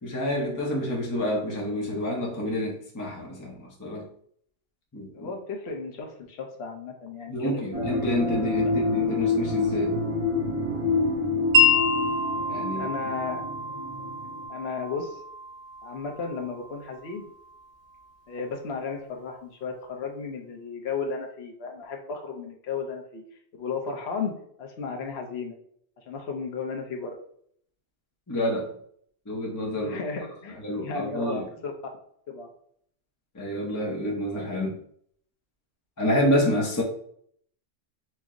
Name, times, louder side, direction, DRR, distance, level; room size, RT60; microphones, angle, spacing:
voice 1, 0.0-4.1 4.9-5.3 7.3-10.0 12.5-12.9 28.3-28.7 29.3-30.0 30.6-31.4 33.3-34.8 36.0-36.8, left 1 dB, 20° left, -2 dB, 0.6 m, -28 dB
voice 2, 5.1-8.1 12.7-13.4 14.5-15.2 15.8-17.3 18.3-23.2 23.6-24.3 24.6-25.6 26.0-27.2 29.8-30.6 30.8-31.7 32.3-32.5, left 4 dB, 70° left, 1 dB, 1.0 m, -34 dB
sound 1, 7.7-14.4, left 3 dB, 40° right, 0.7 m, -27 dB
Wind chime, 11.5-17.6, left 3 dB, 75° right, 0.9 m, -27 dB
4.4 x 2.0 x 3.6 m, 0.64 s
omnidirectional pair, 1.2 m